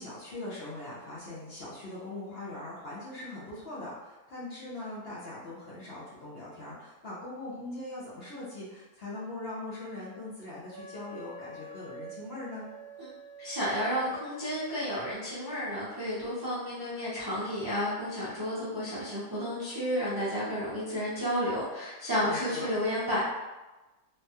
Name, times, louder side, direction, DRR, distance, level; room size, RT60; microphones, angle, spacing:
voice 1, 0.0-12.7 22.2-22.7, left 2 dB, 55° left, -7 dB, 0.8 m, -41 dB
Wind instrument woodwind instrument, 10.7-15.2, equal, 75° right, 1.0 m, -47 dB
voice 2, 13.4-23.2, equal, 25° right, -10 dB, 0.5 m, -31 dB
3.2 x 2.3 x 2.7 m, 1.1 s
omnidirectional pair, 1.5 m